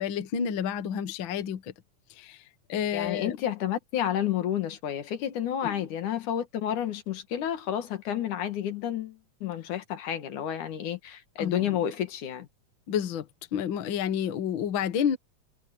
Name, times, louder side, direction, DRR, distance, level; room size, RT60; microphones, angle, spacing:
voice 1, 0.0-1.7 2.1-2.4 2.7-3.4 5.6-5.8 11.4-11.8 12.9-13.3 13.5-15.2, left 8 dB, 50° left, 1.7 m, -30 dB
voice 2, 2.9-12.5, left 10 dB, 80° left, 3.2 m, -30 dB
omnidirectional pair, 3.5 m